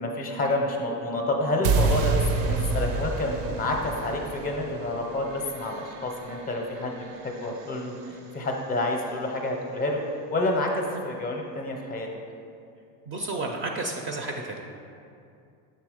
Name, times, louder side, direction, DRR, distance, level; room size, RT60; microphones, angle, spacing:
voice 1, 0.0-10.0 10.3-12.1, left 2 dB, 20° left, 1 dB, 0.5 m, -29 dB
sound 1, 1.6-7.8, right 4 dB, 90° right, 0.7 m, -29 dB
voice 2, 13.1-14.7, right 2 dB, 35° right, 2 dB, 0.4 m, -32 dB
6.7 x 3.6 x 4.8 m, 2.4 s
cardioid pair, 145°, 41 cm